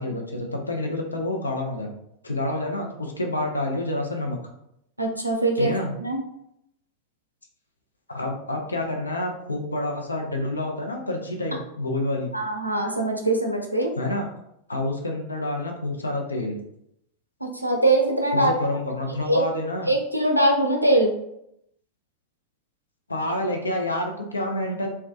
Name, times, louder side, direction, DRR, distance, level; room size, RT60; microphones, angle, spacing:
voice 1, 0.0-1.9 2.2-4.4 5.6-5.9 8.1-12.3 14.0-14.3 14.7-16.6 18.3-19.9 23.1-24.9, left 1 dB, 80° left, 1 dB, 0.5 m, -28 dB
voice 2, 5.0-5.7 6.0-6.2 12.3-13.9 17.4-18.6 19.3-19.4 19.9-21.1, right 1 dB, 90° right, 2 dB, 0.4 m, -22 dB
2.3 x 2.1 x 2.7 m, 0.77 s
figure-of-eight pair, 90°, 0 cm